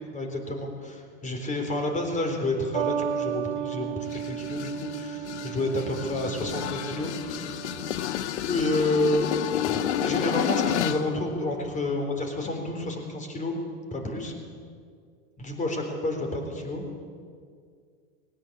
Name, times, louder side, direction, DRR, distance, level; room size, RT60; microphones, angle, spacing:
voice 1, 0.1-7.7 8.5-9.3 9.5-13.6 13.9-14.3 15.4-16.8, left 2 dB, 20° left, 3 dB, 3.9 m, -30 dB
sound 1, 2.7-8.0, right 9 dB, 70° right, 1.3 m, -34 dB
sound 2, 4.1-11.1, left 10 dB, 80° left, 1.1 m, -30 dB
18.5 x 18.0 x 8.5 m, 2.2 s
hypercardioid pair, 115°, 34 cm